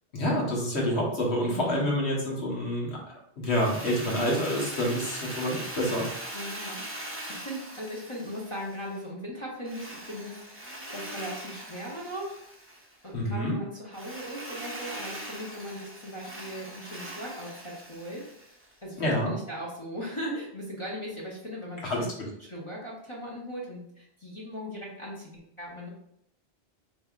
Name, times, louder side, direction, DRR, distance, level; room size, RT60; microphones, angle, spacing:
voice 1, 0.1-6.1 13.1-13.6 19.0-19.3 21.8-22.0, equal, 85° left, -3 dB, 1.4 m, -28 dB
voice 2, 1.5-1.9 6.3-12.4 13.0-18.3 18.8-22.1 22.4-25.9, equal, 30° left, -5 dB, 0.8 m, -38 dB
Drill, 3.5-9.0 9.6-12.9 13.9-18.7, right 1 dB, 15° right, 0.5 m, -41 dB
4.6 x 3.3 x 2.4 m, 0.74 s
omnidirectional pair, 1.1 m